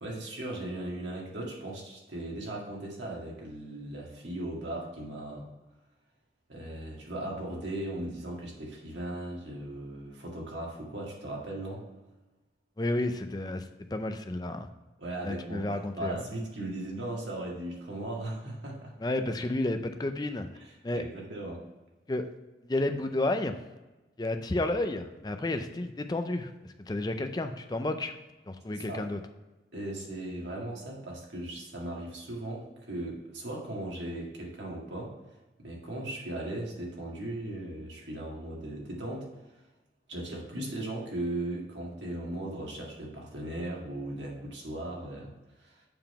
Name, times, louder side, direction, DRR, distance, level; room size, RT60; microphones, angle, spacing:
voice 1, 0.0-5.5 6.5-11.8 15.0-18.9 20.9-21.6 28.7-29.0 29.7-35.1 35.6-39.3 40.1-45.3 45.6-45.7, right 1 dB, 90° right, -3 dB, 2.0 m, -37 dB
voice 2, 12.8-13.6 13.9-14.7 15.2-16.2 19.0-20.5 20.8-21.0 22.1-22.2 22.6-23.5 24.2-26.5 26.8-28.1 28.5-29.2, left 2 dB, 20° left, 8 dB, 0.4 m, -31 dB
6.9 x 3.8 x 5.6 m, 1.1 s
head